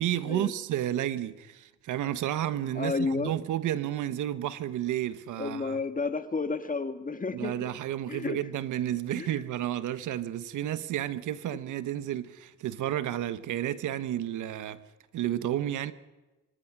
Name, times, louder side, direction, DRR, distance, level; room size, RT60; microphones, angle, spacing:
voice 1, 0.0-5.8 7.3-14.8 15.1-15.9, right 12 dB, 80° right, 1.4 m, -31 dB
voice 2, 2.8-3.3 5.4-7.5 8.1-8.4 9.1-9.4, left 4 dB, 25° left, 1.9 m, -31 dB
24.5 x 16.5 x 9.9 m
cardioid pair, 90°, 30 cm